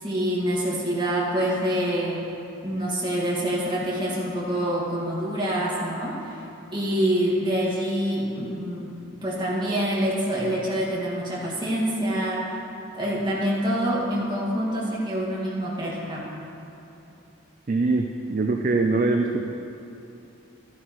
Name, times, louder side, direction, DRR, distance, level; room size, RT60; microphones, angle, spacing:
voice 1, 0.0-2.2 2.6-6.4 6.7-12.6 12.9-16.2, equal, 20° right, -6 dB, 2.0 m, -26 dB
voice 2, 17.7-19.5, right 3 dB, 40° right, 3 dB, 0.4 m, -23 dB
12.0 x 11.5 x 3.1 m, 2.8 s
head